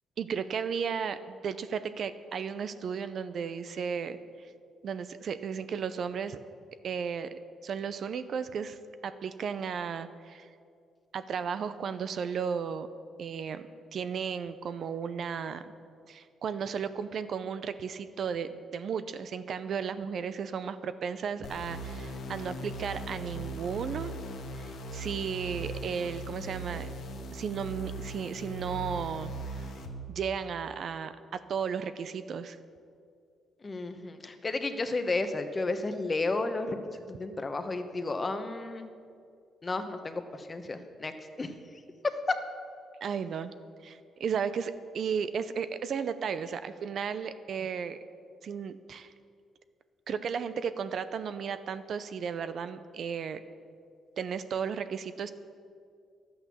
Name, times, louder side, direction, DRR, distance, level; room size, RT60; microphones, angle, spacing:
voice 1, 0.2-4.2 4.8-6.4 6.8-10.5 11.1-12.9 13.2-15.7 16.1-24.1 24.5-26.9 27.3-29.7 30.1-32.6 43.0-43.5 43.8-48.0 48.4-49.1 50.1-53.4 54.2-55.3, right 6 dB, 60° right, 12 dB, 0.6 m, -34 dB
sound 1, 21.4-29.9, right 1 dB, 65° left, 1.5 m, -39 dB
voice 2, 33.6-36.8 37.1-38.9 39.6-41.1 41.4-41.5 42.0-42.4, left 3 dB, 30° left, 8 dB, 1.0 m, -32 dB
11.5 x 8.6 x 7.1 m, 2.3 s
cardioid pair, 90°, 0 cm